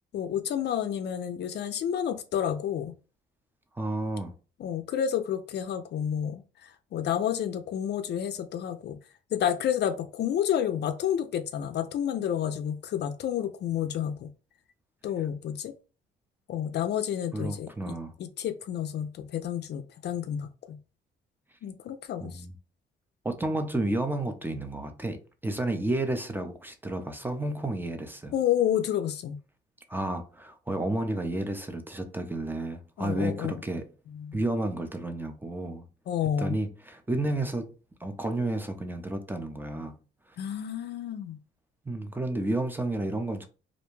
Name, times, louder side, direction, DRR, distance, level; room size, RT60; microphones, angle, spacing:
voice 1, 0.1-2.9 4.6-9.0 9.3-14.3 15.0-15.7 16.5-20.8 21.6-22.4 28.3-29.4 33.0-33.6 34.1-34.4 36.1-36.6 40.4-41.4, left 9 dB, 60° left, 0.4 m, -30 dB
voice 2, 3.8-4.3 17.3-18.1 22.2-22.5 23.2-28.3 29.9-33.9 34.3-35.8 36.4-37.7 38.0-40.0 41.8-43.5, right 1 dB, 10° right, 0.5 m, -31 dB
2.5 x 2.2 x 3.0 m
cardioid pair, 90°, 20 cm